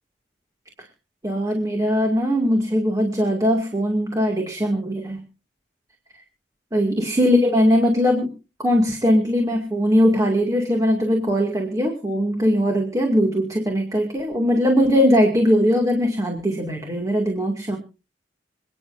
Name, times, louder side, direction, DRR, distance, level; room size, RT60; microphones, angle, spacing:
voice 1, 1.2-5.2 6.7-8.3 8.6-17.8, equal, 20° right, 1 dB, 2.3 m, -20 dB
27.5 x 10.0 x 2.6 m, 0.32 s
head